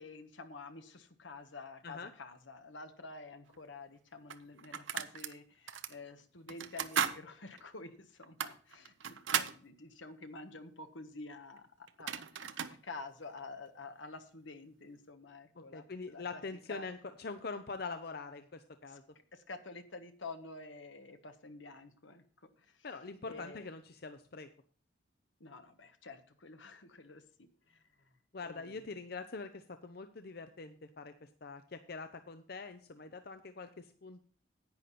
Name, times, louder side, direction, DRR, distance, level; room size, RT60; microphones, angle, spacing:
voice 1, 0.0-16.4 16.7-16.9 18.9-19.0 19.3-23.0 23.3-23.7 25.4-29.0, left 3 dB, 85° left, 8 dB, 1.3 m, -49 dB
sound 1, 3.5-3.6 4.3-5.3 5.7-5.9 6.5-7.2 7.6-7.7 8.2-9.6 11.6-11.7 11.9-12.8, right 8 dB, 85° right, 0.8 m, -36 dB
voice 2, 15.6-19.0 22.8-24.5 28.3-34.2, left 4 dB, 55° left, 9 dB, 0.7 m, -44 dB
10.5 x 9.1 x 4.2 m, 0.42 s
head